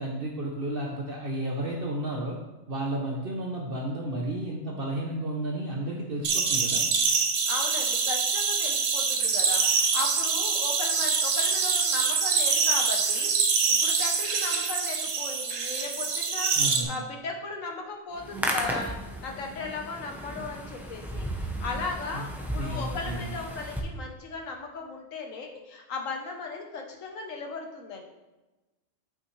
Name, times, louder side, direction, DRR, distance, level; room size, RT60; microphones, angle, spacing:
voice 1, 0.0-2.4 2.7-6.8 16.5-16.9 22.1-22.3 22.6-23.3, right 1 dB, 50° right, -2 dB, 1.0 m, -32 dB
sound 1, 6.2-16.8, right 5 dB, 75° right, 1.2 m, -25 dB
voice 2, 7.5-28.0, left 3 dB, 80° left, 2 dB, 1.4 m, -37 dB
Hands, 18.1-23.8, equal, ahead, 0.7 m, -34 dB
8.5 x 6.1 x 3.2 m, 1.1 s
omnidirectional pair, 1.3 m